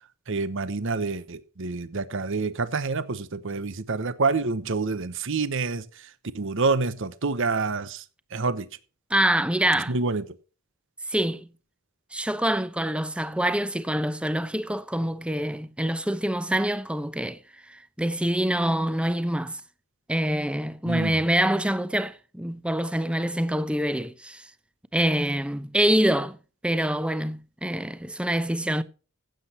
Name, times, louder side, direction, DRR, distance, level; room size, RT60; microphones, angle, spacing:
voice 1, 0.3-6.1 6.3-8.0 8.3-8.7 9.9-10.2 20.8-21.2, right 4 dB, 65° right, 1.0 m, -27 dB
voice 2, 9.1-10.0 11.1-11.5 12.1-17.4 17.7-19.6 20.1-24.5 24.9-26.4 26.6-28.8, right 1 dB, 5° right, 0.8 m, -25 dB
15.5 x 8.1 x 4.3 m
head